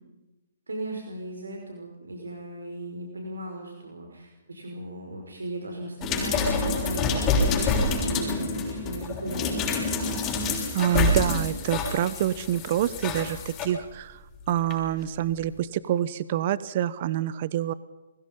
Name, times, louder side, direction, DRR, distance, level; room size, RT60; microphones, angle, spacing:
voice 1, 0.7-9.7, right 1 dB, 85° right, 2 dB, 5.5 m, -36 dB
sound 1, 6.0-13.7 14.7-14.8, left 3 dB, 20° left, 6.5 m, -27 dB
voice 2, 10.7-14.2 14.5-17.7, right 11 dB, 45° right, 17 dB, 1.0 m, -26 dB
30.0 x 22.0 x 5.5 m, 1.0 s
hypercardioid pair, 140°, 0 cm